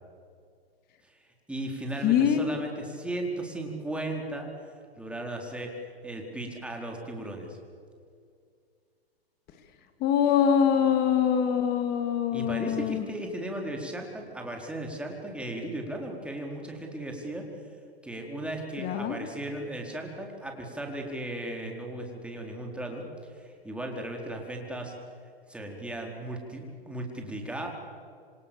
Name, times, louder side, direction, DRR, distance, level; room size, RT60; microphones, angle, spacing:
voice 1, 1.5-4.5 5.0-7.6 12.3-17.5 18.0-25.0 25.5-27.7, right 1 dB, 5° right, 1 dB, 4.1 m, -36 dB
voice 2, 2.0-2.5 10.0-13.0 18.8-19.2, left 8 dB, 30° left, 7 dB, 2.8 m, -24 dB
27.5 x 26.5 x 7.1 m, 2.3 s
hypercardioid pair, 125°, 31 cm